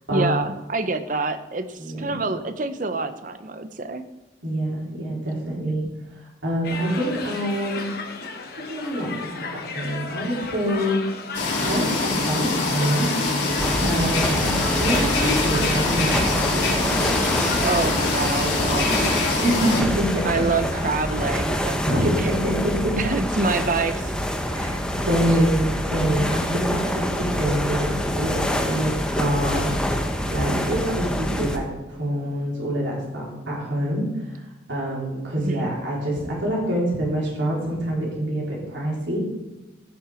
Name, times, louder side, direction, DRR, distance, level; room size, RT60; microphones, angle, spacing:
voice 1, 0.1-4.0 5.6-5.7 13.8-14.1 17.6-19.8 20.2-22.3 23.0-24.1 25.1-25.2 30.5-30.9 35.4-35.7, right 3 dB, 45° right, 11 dB, 0.7 m, -27 dB
voice 2, 1.8-2.2 4.4-5.8 6.4-7.9 8.6-11.0 11.4-13.1 13.4-13.5 13.8-16.7 19.4-20.4 21.9-23.0 24.5-29.9 30.3-39.2, equal, 85° right, -4 dB, 3.9 m, -26 dB
sound 1, 6.6-21.9, left 3 dB, 55° left, 1.2 m, -35 dB
sound 2, 11.3-19.8, left 3 dB, 80° left, 4.3 m, -24 dB
sound 3, 13.6-31.6, equal, 5° left, 0.8 m, -26 dB
15.0 x 6.0 x 5.0 m, 1.1 s
head